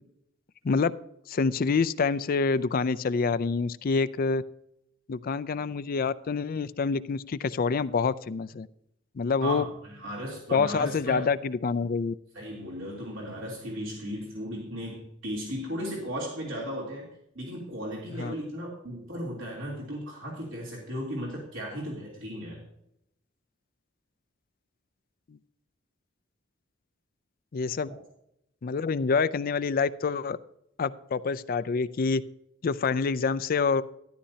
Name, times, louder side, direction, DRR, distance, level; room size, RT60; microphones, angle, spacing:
voice 1, 1.3-4.4 5.1-8.7 9.2-9.6 10.5-12.1 18.2-18.3 25.3-25.4 27.5-27.9 28.6-30.4 30.8-32.2 32.6-33.8, left 4 dB, 45° left, 16 dB, 0.4 m, -27 dB
voice 2, 9.4-11.3 12.3-17.1 17.3-22.6, equal, 75° right, -3 dB, 3.2 m, -36 dB
13.0 x 11.5 x 2.8 m, 0.78 s
head